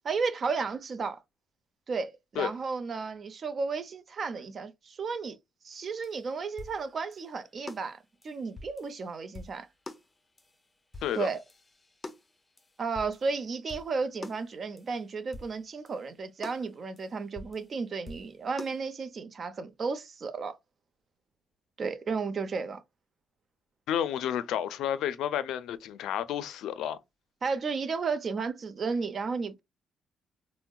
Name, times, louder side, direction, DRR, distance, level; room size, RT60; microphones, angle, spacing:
voice 1, 0.0-1.2 1.9-5.4 5.6-8.0 8.2-9.7 11.1-11.4 12.8-20.6 21.8-22.8 27.4-29.6, right 4 dB, 45° right, 0.6 m, -33 dB
sound 1, 5.7-5.8 6.0-6.2 6.6-7.3 7.7-9.1 9.3-10.6 10.9-13.3 13.7-13.9 14.2-14.5 14.8-15.0 15.3-16.1 16.4-17.7 18.1-18.8, left 2 dB, 20° left, 0.6 m, -46 dB
voice 2, 23.9-27.0, left 10 dB, 85° left, 0.4 m, -31 dB
4.5 x 2.1 x 2.2 m
cardioid pair, 90°, 0 cm